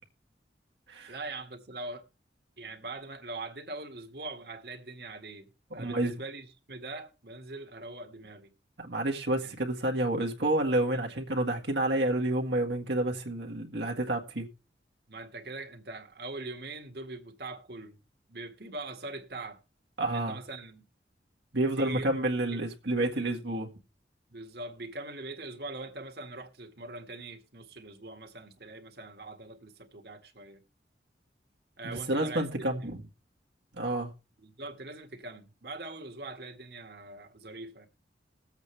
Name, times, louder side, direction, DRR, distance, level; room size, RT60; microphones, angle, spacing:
voice 1, 1.1-2.0 2.6-8.5 9.4-9.6 10.9-11.0 15.1-18.0 18.3-19.6 20.0-20.8 21.8-22.1 22.5-22.6 23.1-23.4 24.3-30.6 31.8-32.9 34.4-37.9, right 2 dB, 60° right, 1.9 m, -42 dB
voice 2, 5.8-6.2 8.8-14.5 20.0-20.4 21.5-23.7 31.8-33.0 33.8-34.1, right 1 dB, 80° right, 1.9 m, -29 dB
21.0 x 8.1 x 3.3 m
head